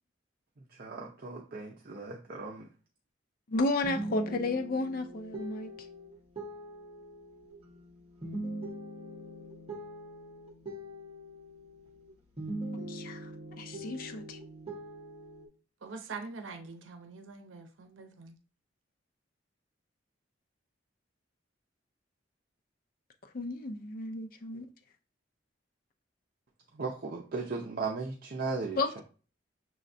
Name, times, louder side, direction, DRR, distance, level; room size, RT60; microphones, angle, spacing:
voice 1, 0.8-2.7 26.7-28.8, right 4 dB, 50° right, 0.6 m, -36 dB
voice 2, 3.5-5.7 12.9-13.3 13.6-14.4 23.3-24.7 28.8-29.0, left 2 dB, 50° left, 0.4 m, -32 dB
sound 1, 3.8-12.1 12.4-15.5, right 1 dB, 30° right, 1.1 m, -42 dB
voice 3, 15.8-18.4, right 4 dB, 90° right, 0.7 m, -44 dB
6.2 x 3.2 x 2.6 m
head